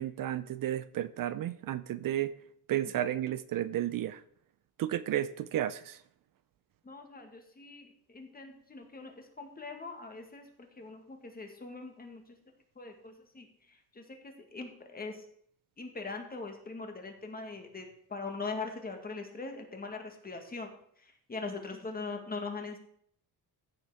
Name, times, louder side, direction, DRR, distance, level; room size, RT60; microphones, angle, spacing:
voice 1, 0.0-2.3 2.7-4.2 4.8-6.0, right 12 dB, 60° right, 15 dB, 0.6 m, -32 dB
voice 2, 6.8-12.4 12.8-15.3 15.8-20.7 21.0-22.8, left 3 dB, 25° left, 4 dB, 2.0 m, -42 dB
14.5 x 6.6 x 5.0 m, 0.64 s
cardioid pair, 130°, 39 cm